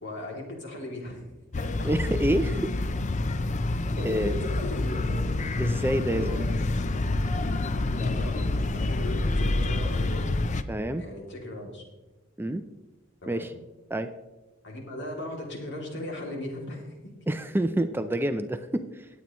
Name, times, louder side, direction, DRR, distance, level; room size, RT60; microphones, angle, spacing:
voice 1, 0.0-1.2 1.6-1.9 3.7-5.3 6.1-6.4 7.9-10.4 10.9-11.8 13.2-13.5 14.6-17.1, left 1 dB, 60° left, 0 dB, 2.8 m, -37 dB
sound 1, 1.5-10.6, left 2 dB, 35° left, 0.5 m, -27 dB
voice 2, 1.8-2.9 4.0-4.3 5.6-6.4 10.7-11.0 12.4-12.6 13.3-13.5 13.9-14.1 17.3-19.1, right 1 dB, 10° right, 9 dB, 0.5 m, -28 dB
18.5 x 8.4 x 3.1 m, 1.1 s
head